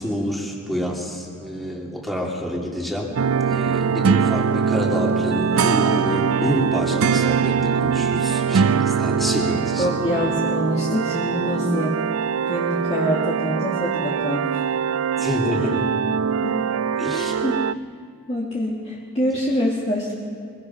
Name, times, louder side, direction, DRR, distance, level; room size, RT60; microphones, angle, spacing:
voice 1, 0.0-3.1 3.4-9.9 15.2-15.8 17.0-17.3, equal, ahead, -3 dB, 2.7 m, -27 dB
sound 1, 3.2-17.7, right 6 dB, 80° right, 0.4 m, -22 dB
voice 2, 9.8-12.0 12.5-14.6 15.2-15.3 15.6-15.7 16.4-16.5 17.1-17.5 18.3-20.1, equal, 30° left, -4 dB, 2.0 m, -25 dB
23.5 x 21.5 x 5.7 m, 2.4 s
head